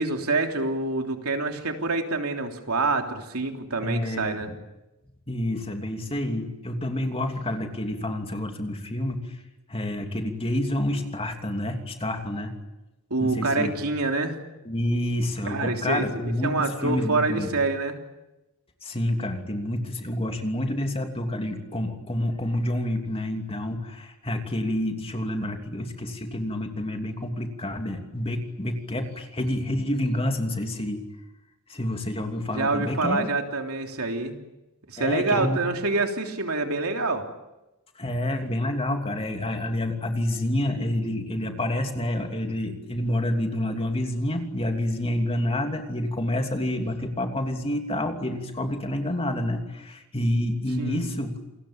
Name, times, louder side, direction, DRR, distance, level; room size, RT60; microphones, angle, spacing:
voice 1, 0.0-4.5 13.1-14.3 15.5-16.0 16.4-18.0 32.5-34.4 34.9-37.2 50.8-51.0, right 3 dB, 70° right, 3 dB, 3.4 m, -26 dB
voice 2, 3.8-4.6 5.3-9.4 9.7-12.5 13.2-13.8 14.6-17.5 18.8-31.0 31.7-33.3 35.0-35.6 37.9-51.4, left 1 dB, 25° left, 4 dB, 3.0 m, -28 dB
28.5 x 21.0 x 8.7 m, 1.0 s
head